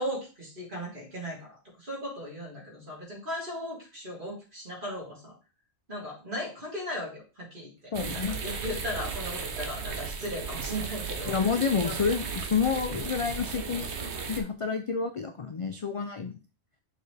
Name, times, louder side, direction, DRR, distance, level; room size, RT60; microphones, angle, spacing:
voice 1, 0.0-5.4 5.9-7.7 8.1-11.3 11.8-12.0, equal, 45° right, -6 dB, 3.6 m, -37 dB
voice 2, 7.9-8.4 11.3-16.4, left 5 dB, 45° left, 7 dB, 0.4 m, -29 dB
sound 1, 7.9-14.4, right 5 dB, 75° right, 1.2 m, -35 dB
6.4 x 4.4 x 3.4 m, 0.33 s
omnidirectional pair, 1.2 m